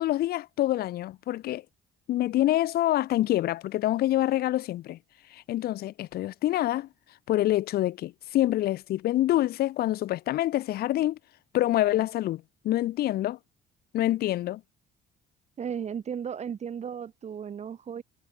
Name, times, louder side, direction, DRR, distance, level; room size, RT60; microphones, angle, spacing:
voice 1, 0.0-1.6 2.1-5.0 5.3-6.9 7.3-11.2 11.5-13.4 13.9-14.6, left 14 dB, 65° left, 1.1 m, -26 dB
voice 2, 15.6-18.0, right 7 dB, 40° right, 3.3 m, -35 dB
cardioid pair, 110°, 17 cm